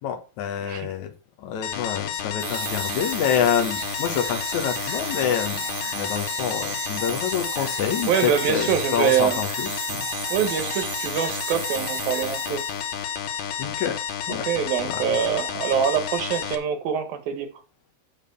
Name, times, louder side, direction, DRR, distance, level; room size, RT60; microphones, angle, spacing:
voice 1, 0.0-1.1 1.4-5.6 5.9-10.1 13.6-14.0 14.3-14.5 14.8-15.1, left 8 dB, 65° left, 5 dB, 2.0 m, -27 dB
sound 1, 1.6-16.6, left 8 dB, 85° left, 3.5 m, -31 dB
sound 2, 2.4-12.9, right 13 dB, 80° right, 3.0 m, -35 dB
voice 2, 8.1-9.4 10.3-12.6 14.5-17.5, right 8 dB, 65° right, 8 dB, 3.1 m, -24 dB
7.4 x 7.4 x 6.9 m, 0.34 s
omnidirectional pair, 5.0 m